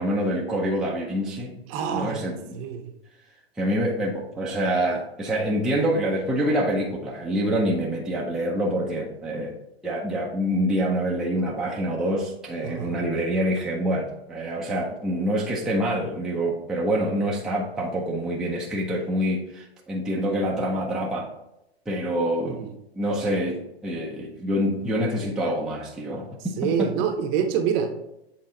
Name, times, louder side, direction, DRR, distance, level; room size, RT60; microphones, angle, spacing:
voice 1, 0.0-1.5 1.9-2.6 3.6-9.5 9.8-21.3 21.9-22.7 23.0-26.9, equal, ahead, -4 dB, 0.6 m, -26 dB
voice 2, 1.7-2.2 2.5-2.9 12.6-13.0 22.4-22.7 26.6-27.9, right 7 dB, 35° right, 6 dB, 0.8 m, -26 dB
7.7 x 3.7 x 3.8 m, 0.89 s
hypercardioid pair, 135°, 32 cm